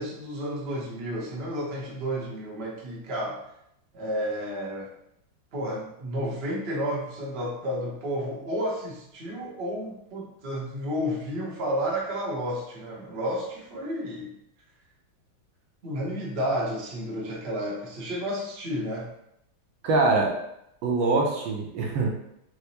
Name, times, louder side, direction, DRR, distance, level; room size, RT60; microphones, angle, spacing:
voice 1, 0.0-3.4 3.9-4.9 5.5-14.3 15.8-19.1, equal, 55° right, -4 dB, 0.7 m, -31 dB
voice 2, 19.8-20.4 20.8-22.1, right 3 dB, 75° right, -1 dB, 1.4 m, -23 dB
4.5 x 2.0 x 2.8 m, 0.77 s
omnidirectional pair, 2.3 m